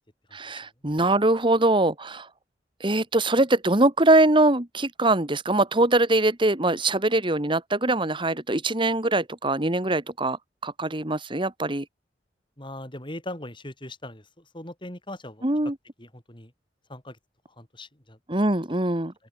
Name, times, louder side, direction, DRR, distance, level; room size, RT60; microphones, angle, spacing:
voice 1, 0.3-2.3 2.8-10.4 10.6-11.9 15.4-15.8 18.3-19.1, right 2 dB, 30° right, 2.1 m, -22 dB
voice 2, 12.6-15.5 16.0-16.5 16.9-17.2 17.6-18.2, left 1 dB, 30° left, 6.3 m, -40 dB
open air
head